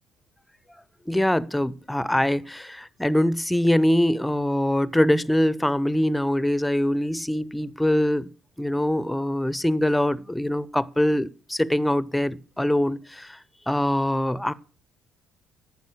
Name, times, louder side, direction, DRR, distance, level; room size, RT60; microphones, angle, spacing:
voice 1, 1.1-8.3 8.6-13.4 13.7-14.5, left 1 dB, 5° left, 0.7 m, -23 dB
13.5 x 5.6 x 6.2 m
figure-of-eight pair, 50°, 0 cm